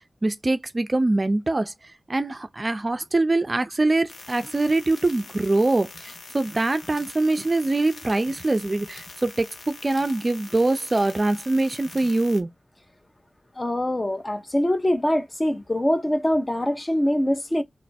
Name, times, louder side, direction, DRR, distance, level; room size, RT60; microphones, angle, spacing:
voice 1, 0.2-1.7 2.1-12.5, right 2 dB, 30° right, 0.4 m, -23 dB
sound 1, 4.1-12.4, left 3 dB, 80° left, 0.9 m, -44 dB
voice 2, 13.6-17.6, left 1 dB, 20° left, 0.7 m, -23 dB
3.3 x 2.9 x 4.0 m
wide cardioid pair, 115°, 0 cm